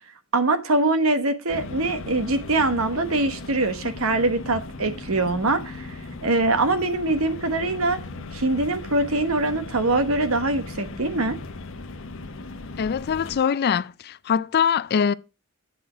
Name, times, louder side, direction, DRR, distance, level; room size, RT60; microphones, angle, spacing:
voice 1, 0.3-5.9 6.2-8.0 8.3-11.4, right 2 dB, 75° right, 1.2 m, -23 dB
sound 1, 1.5-13.4, left 2 dB, 65° left, 0.9 m, -37 dB
voice 2, 12.8-15.1, left 7 dB, 50° left, 0.4 m, -23 dB
7.7 x 6.0 x 5.0 m
head